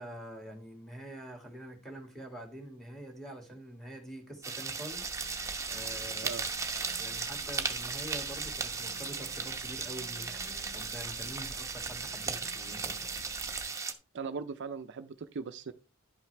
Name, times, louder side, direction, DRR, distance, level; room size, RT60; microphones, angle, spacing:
voice 1, 0.0-5.4 5.7-6.3 7.0-13.1, right 1 dB, ahead, 2.2 m, -45 dB
sound 1, 4.4-13.9, right 4 dB, 15° right, 0.9 m, -36 dB
sound 2, 4.9-13.6, right 1 dB, 60° left, 4.9 m, -51 dB
voice 2, 14.1-15.7, right 5 dB, 55° right, 0.5 m, -39 dB
11.0 x 5.8 x 3.3 m
head